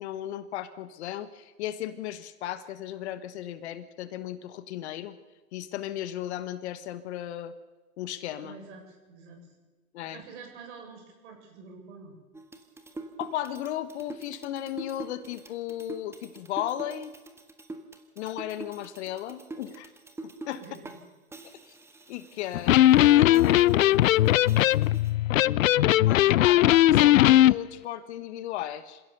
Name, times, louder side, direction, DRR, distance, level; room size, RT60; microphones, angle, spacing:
voice 1, 0.0-5.2 5.5-7.5 8.0-8.6 9.9-10.2 13.2-17.1 18.2-19.9 20.2-20.6 22.1-24.9 26.0-29.0, left 12 dB, 50° left, 12 dB, 1.4 m, -35 dB
voice 2, 8.4-9.5 10.1-12.2 20.5-21.0, right 4 dB, 50° right, 3 dB, 7.6 m, -47 dB
sound 1, 12.3-21.0 21.3-25.1, right 2 dB, 5° right, 1.6 m, -45 dB
Electric guitar, 22.5-27.5, left 14 dB, 65° left, 0.6 m, -19 dB
27.5 x 16.0 x 6.8 m, 1.2 s
hypercardioid pair, 120°, 44 cm